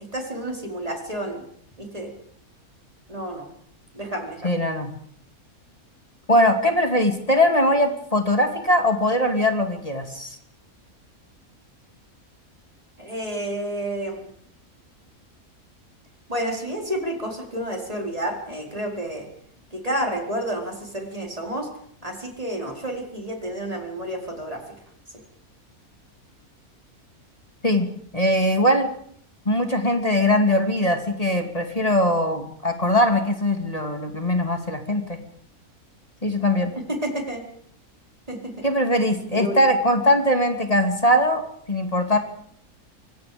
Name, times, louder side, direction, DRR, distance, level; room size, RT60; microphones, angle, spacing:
voice 1, 0.1-1.4 1.8-2.1 3.1-3.5 3.9-4.5 13.0-14.3 16.3-19.3 19.7-21.7 22.0-24.6 36.9-37.4 38.3-38.5 39.3-39.6, right 1 dB, 25° right, 1 dB, 4.7 m, -30 dB
voice 2, 4.4-4.9 6.3-10.3 27.6-27.9 28.1-28.9 29.5-35.2 36.2-36.7 38.6-41.4 41.7-42.2, left 1 dB, 25° left, 5 dB, 2.6 m, -21 dB
26.0 x 22.5 x 5.2 m, 0.65 s
omnidirectional pair, 1.5 m